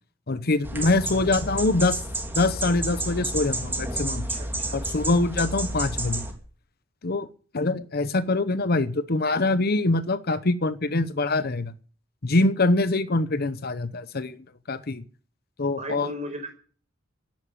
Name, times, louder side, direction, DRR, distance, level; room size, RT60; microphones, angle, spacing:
voice 1, 0.3-2.0 2.3-4.2 4.7-6.2 7.0-7.3 7.5-11.7 12.2-14.4 14.7-15.0 15.6-16.1, left 2 dB, 50° left, 14 dB, 0.9 m, -24 dB
sound 1, 0.6-6.3, right 1 dB, 10° right, 3.1 m, -30 dB
voice 2, 4.3-4.8 15.8-16.5, equal, 35° right, 6 dB, 5.0 m, -36 dB
12.5 x 10.5 x 8.6 m, 0.42 s
head